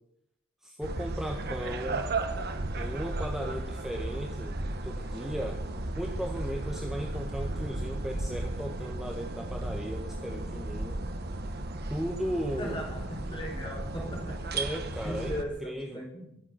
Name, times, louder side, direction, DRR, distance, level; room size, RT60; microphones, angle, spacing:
voice 1, 0.6-2.0 2.7-4.5 4.8-5.6 6.0-11.0 11.9-12.8 14.5-15.3 15.6-16.1, equal, ahead, 1 dB, 1.3 m, -36 dB
sound 1, 0.8-15.4, right 2 dB, 50° right, 1.3 m, -35 dB
voice 2, 12.6-14.6 15.0-16.4, equal, 25° left, 0 dB, 4.9 m, -38 dB
22.0 x 7.8 x 6.3 m, 0.78 s
head